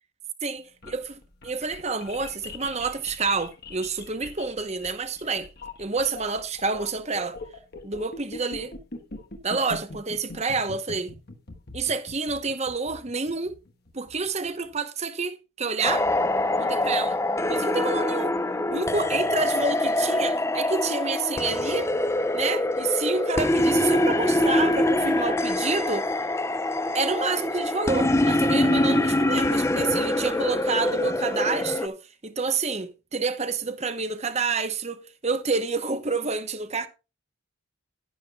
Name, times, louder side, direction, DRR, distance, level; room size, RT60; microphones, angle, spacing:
voice 1, 0.4-1.1 1.4-5.5 5.8-7.4 7.8-8.7 9.4-11.1 11.7-13.6 13.9-16.1 16.6-17.2 17.5-18.4 18.7-21.9 22.3-26.1 26.9-36.9, right 4 dB, 30° right, 0.9 m, -28 dB
sound 1, 0.6-14.7, left 2 dB, 50° left, 1.3 m, -42 dB
sound 2, 15.8-31.9, left 1 dB, 15° left, 0.5 m, -24 dB
11.5 x 10.5 x 2.4 m
head